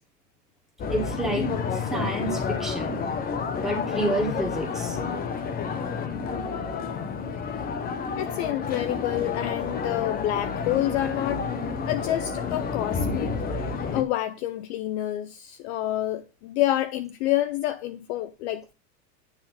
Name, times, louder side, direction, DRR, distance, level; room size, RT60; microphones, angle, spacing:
sound 1, 0.8-14.0, left 5 dB, 20° left, 0.9 m, -30 dB
voice 1, 0.9-3.0 3.6-5.0, right 1 dB, ahead, 2.0 m, -29 dB
voice 2, 8.2-11.5 11.9-13.4 13.9-18.7, left 14 dB, 45° left, 0.6 m, -28 dB
9.7 x 3.8 x 5.6 m
hypercardioid pair, 120°, 48 cm